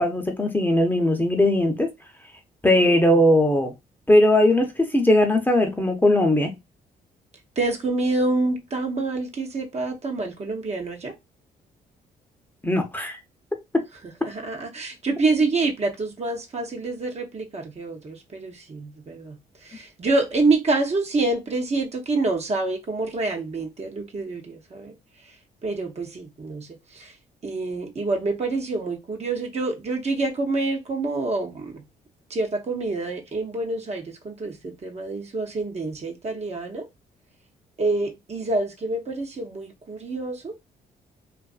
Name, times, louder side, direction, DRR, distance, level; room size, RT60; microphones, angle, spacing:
voice 1, 0.0-1.9 2.6-3.7 4.1-6.5 12.6-13.2, left 1 dB, 10° left, 0.7 m, -19 dB
voice 2, 2.8-3.2 7.6-11.1 14.2-24.9 25.6-27.1 27.4-31.8 32.3-36.9 37.8-40.5, right 3 dB, 40° right, 0.8 m, -27 dB
2.5 x 2.4 x 2.4 m
supercardioid pair, 60°, 18 cm